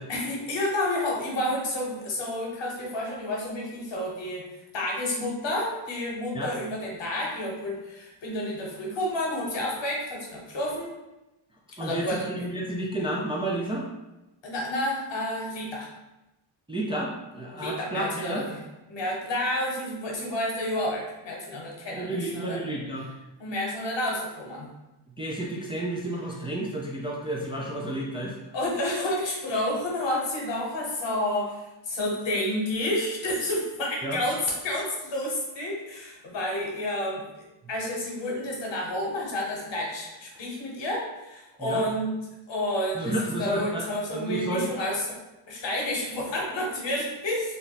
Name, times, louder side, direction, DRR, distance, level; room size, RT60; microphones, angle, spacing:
voice 1, 0.1-4.5 4.7-10.9 11.8-12.3 14.4-15.9 17.5-18.6 18.9-22.7 23.4-24.7 28.5-42.1 42.5-45.2 45.5-47.6, left 1 dB, 65° left, -1 dB, 1.0 m, -30 dB
voice 2, 11.8-13.9 16.7-18.4 21.9-23.1 25.2-28.3 34.0-34.2 41.6-41.8 42.9-43.9 44.1-44.9, right 1 dB, 15° right, -4 dB, 0.3 m, -31 dB
2.5 x 2.1 x 3.9 m, 1.0 s
cardioid pair, 100°, 46 cm